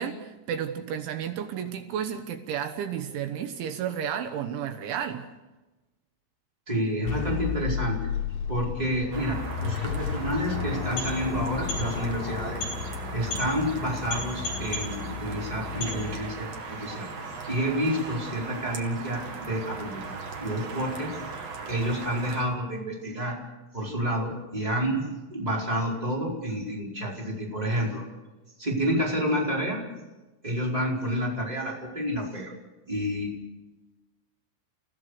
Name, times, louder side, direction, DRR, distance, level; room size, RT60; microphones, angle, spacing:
voice 1, 0.0-5.3, right 8 dB, 75° right, 7 dB, 3.4 m, -32 dB
voice 2, 6.7-8.1 8.5-12.6 13.1-17.1 17.5-21.1 21.7-23.4 23.7-28.0 28.6-29.8 30.4-32.5 32.9-33.3, equal, 10° right, -2 dB, 4.3 m, -29 dB
sound 1, 7.1-13.2, left 8 dB, 75° left, 3.2 m, -32 dB
sound 2, 9.1-22.4, right 4 dB, 50° right, 2.2 m, -38 dB
sound 3, 10.6-16.4, left 4 dB, 45° left, 8.2 m, -36 dB
29.5 x 16.5 x 6.5 m, 1.1 s
omnidirectional pair, 5.6 m